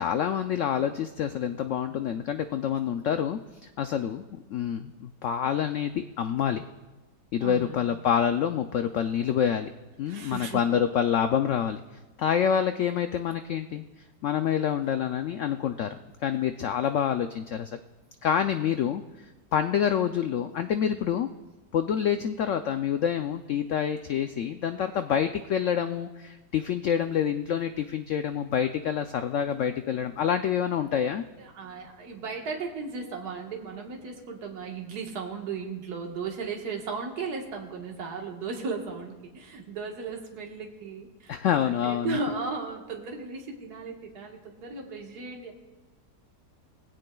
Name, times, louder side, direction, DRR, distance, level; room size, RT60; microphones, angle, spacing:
voice 1, 0.0-4.2 4.5-6.6 7.3-9.7 10.0-11.8 12.2-13.8 14.2-17.8 18.2-19.0 19.5-21.3 21.7-31.2 41.3-42.2, left 8 dB, 90° left, 8 dB, 0.6 m, -27 dB
voice 2, 7.4-7.9 10.1-10.7 31.4-41.3 41.6-45.5, right 4 dB, 65° right, 0 dB, 1.9 m, -36 dB
20.5 x 16.5 x 2.3 m, 1.1 s
omnidirectional pair, 1.8 m